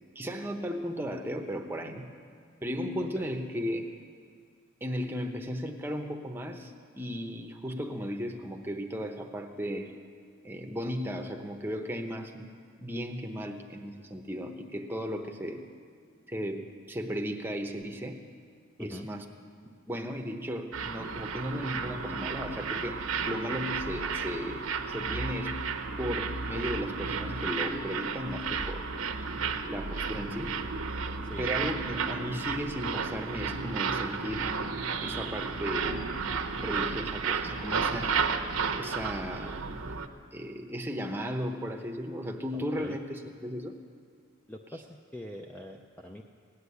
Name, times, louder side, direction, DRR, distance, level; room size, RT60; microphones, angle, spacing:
voice 1, 0.1-2.1 2.6-3.9 4.8-10.0 10.4-12.5 12.8-15.6 16.3-18.2 18.8-19.3 19.9-25.6 26.0-28.9 29.6-30.6 31.4-34.5 35.0-36.1 36.5-38.2 38.7-39.7 40.3-43.7, equal, 10° right, 3 dB, 0.9 m, -35 dB
sound 1, 20.7-40.1, right 5 dB, 90° right, 0.9 m, -33 dB
voice 2, 42.5-43.0 44.5-46.2, equal, 5° left, 1 dB, 0.5 m, -44 dB
17.0 x 9.7 x 8.3 m, 2.1 s
head